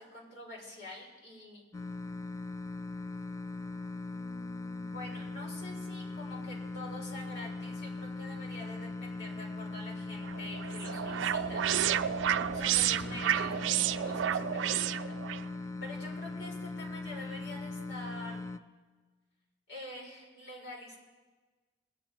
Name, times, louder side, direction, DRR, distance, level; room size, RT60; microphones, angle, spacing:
voice 1, 0.0-1.6 4.1-11.8 12.5-15.1 15.8-18.5 19.7-21.0, left 1 dB, 75° left, -3 dB, 4.3 m, -46 dB
sound 1, 1.7-18.6, left 3 dB, 15° left, 0.4 m, -40 dB
sound 2, 10.2-15.4, right 10 dB, 85° right, 0.4 m, -30 dB
21.0 x 9.2 x 4.3 m, 1.3 s
head